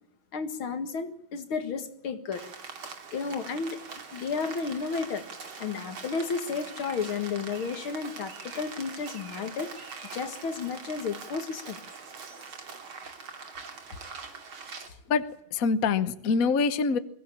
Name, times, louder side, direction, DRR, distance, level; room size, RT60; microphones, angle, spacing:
voice 1, 0.3-2.5 3.1-3.8 4.1-5.3 5.6-11.8, left 5 dB, 80° left, 9 dB, 2.6 m, -32 dB
Rain, 2.3-14.9, right 5 dB, 85° right, 3.4 m, -43 dB
voice 2, 15.1-17.0, left 5 dB, 50° left, 12 dB, 1.4 m, -25 dB
22.5 x 16.0 x 8.6 m, 0.75 s
omnidirectional pair, 2.2 m